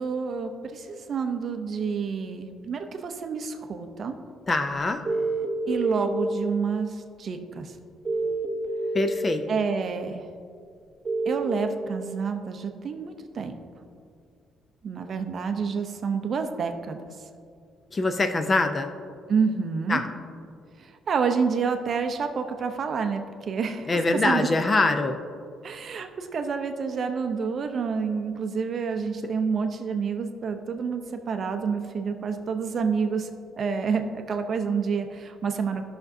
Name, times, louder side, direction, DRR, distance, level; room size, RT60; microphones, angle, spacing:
voice 1, 0.0-4.1 5.7-7.7 9.5-10.2 11.3-13.5 14.8-17.0 19.3-20.0 20.8-23.2 23.5-24.5 25.6-33.3 33.6-35.8, right 5 dB, 40° right, 6 dB, 0.6 m, -28 dB
voice 2, 4.5-5.0 8.9-9.4 17.9-18.9 19.9-20.1 23.9-25.2, left 2 dB, 20° left, 7 dB, 0.4 m, -23 dB
sound 1, 5.1-6.1 8.1-9.1 11.1-11.5, right 3 dB, 15° right, 0.9 m, -27 dB
14.5 x 5.9 x 2.6 m, 2.2 s
cardioid pair, 160°, 0 cm